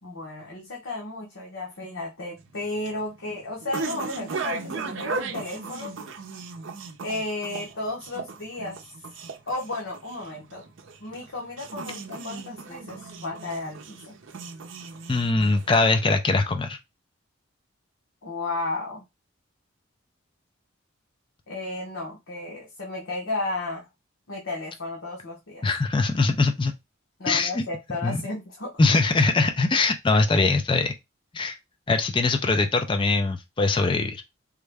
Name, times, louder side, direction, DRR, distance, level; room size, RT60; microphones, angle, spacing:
voice 1, 0.0-5.9 7.0-8.8 9.5-10.6 11.0-14.2 18.2-19.0 21.5-23.9 24.3-25.7 27.2-28.7, left 2 dB, 80° left, 0.9 m, -33 dB
sound 1, 2.4-15.9, right 4 dB, 70° right, 0.6 m, -37 dB
voice 2, 15.1-16.8 25.6-26.7 27.3-27.6 28.0-28.2 28.8-30.9 31.3-31.6 31.9-34.2, left 3 dB, 25° left, 0.3 m, -22 dB
3.6 x 2.1 x 3.4 m
head